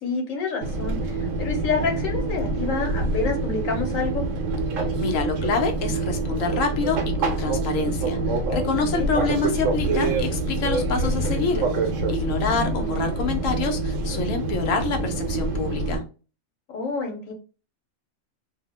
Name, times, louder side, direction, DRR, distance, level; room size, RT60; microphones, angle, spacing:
voice 1, 0.0-4.3 8.8-9.1 12.4-13.0 16.7-17.3, left 4 dB, 90° left, 3 dB, 1.2 m, -28 dB
Fixed-wing aircraft airplane, 0.6-16.0, right 2 dB, 75° right, 1.0 m, -26 dB
voice 2, 5.0-11.7 12.1-16.1, left 5 dB, 75° left, 4 dB, 1.0 m, -27 dB
2.7 x 2.0 x 2.8 m, 0.35 s
omnidirectional pair, 1.4 m